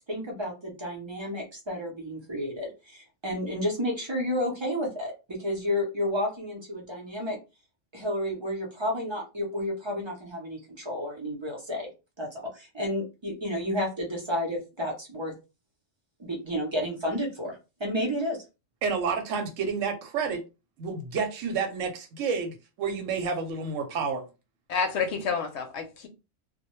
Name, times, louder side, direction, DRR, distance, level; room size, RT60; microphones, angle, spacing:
voice 1, 0.0-7.4 7.9-11.9 12.2-15.3 16.2-18.4, left 1 dB, 30° right, 0.5 m, -31 dB
voice 2, 18.8-20.4 20.8-24.3, right 5 dB, 85° right, 1.0 m, -30 dB
voice 3, 24.7-26.1, left 5 dB, 70° left, 0.8 m, -29 dB
2.2 x 2.1 x 2.9 m
omnidirectional pair, 1.3 m